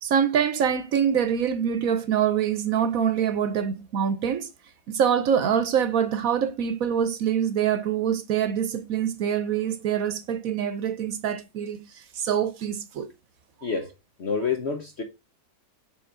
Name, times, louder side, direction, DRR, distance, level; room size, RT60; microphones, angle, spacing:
voice 1, 0.0-4.5 4.9-13.1, right 8 dB, 65° right, 1.2 m, -25 dB
voice 2, 14.2-15.0, left 5 dB, 50° left, 1.1 m, -27 dB
7.2 x 3.8 x 3.8 m
omnidirectional pair, 1.6 m